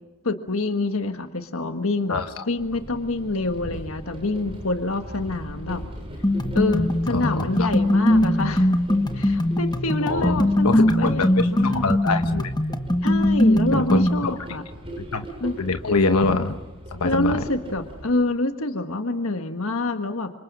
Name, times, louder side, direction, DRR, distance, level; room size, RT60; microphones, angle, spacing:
voice 1, 0.2-5.8 6.5-8.7 9.1-11.9 13.0-14.6 15.4-15.6 17.0-20.3, left 2 dB, 70° left, 6 dB, 1.6 m, -27 dB
voice 2, 2.1-2.4 7.1-7.7 10.0-10.3 10.6-12.5 13.7-14.3 15.0-15.2 15.6-16.5 16.9-17.4, left 3 dB, 90° left, 7 dB, 1.2 m, -24 dB
sound 1, 2.6-18.1, equal, 25° right, 7.6 m, -39 dB
sound 2, 6.2-14.2, left 1 dB, 20° left, 1.3 m, -21 dB
29.5 x 27.0 x 6.2 m, 1.2 s
head